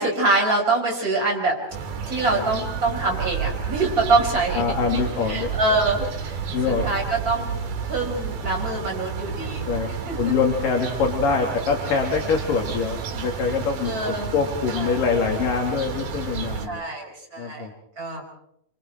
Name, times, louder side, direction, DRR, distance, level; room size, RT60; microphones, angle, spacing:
voice 1, 0.0-1.6 2.1-4.6 4.9-7.5 7.9-10.3 13.8-14.3 14.8-15.0 16.6-17.7 18.0-18.2, right 3 dB, 20° right, 0 dB, 5.5 m, -25 dB
sound 1, 1.7-16.7, right 6 dB, 80° right, 4.0 m, -31 dB
voice 2, 4.5-5.5 6.5-6.9 9.7-9.9 10.2-16.8 17.4-17.7, left 5 dB, 65° left, 1 dB, 4.2 m, -24 dB
26.5 x 26.0 x 4.6 m, 0.76 s
omnidirectional pair, 4.2 m